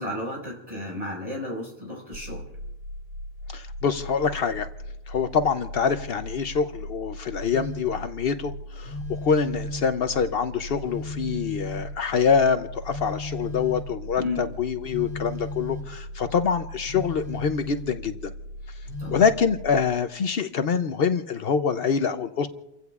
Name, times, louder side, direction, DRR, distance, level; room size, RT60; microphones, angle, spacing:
voice 1, 0.0-2.4 14.2-14.4 19.0-19.2, left 2 dB, 35° right, -2 dB, 5.2 m, -33 dB
sound 1, 2.1-19.8, equal, 80° right, 1.1 m, -39 dB
voice 2, 3.5-4.7 5.1-18.3 19.1-22.5, left 6 dB, 65° left, 9 dB, 0.9 m, -25 dB
Telephone, 7.5-8.0 8.8-10.1 10.8-12.1 12.8-14.1 14.8-16.0 16.8-18.1 18.8-19.4, left 2 dB, 85° left, 1.9 m, -36 dB
30.0 x 16.0 x 2.4 m, 0.97 s
omnidirectional pair, 1.1 m